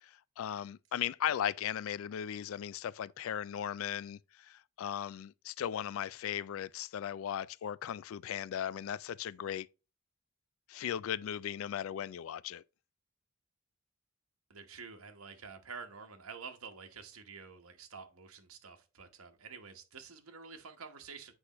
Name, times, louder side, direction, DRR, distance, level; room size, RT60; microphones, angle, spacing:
voice 1, 0.0-9.7 10.7-12.6, left 9 dB, 70° left, 0.3 m, -37 dB
voice 2, 14.5-21.3, right 5 dB, 85° right, 1.1 m, -49 dB
7.9 x 4.9 x 3.0 m
head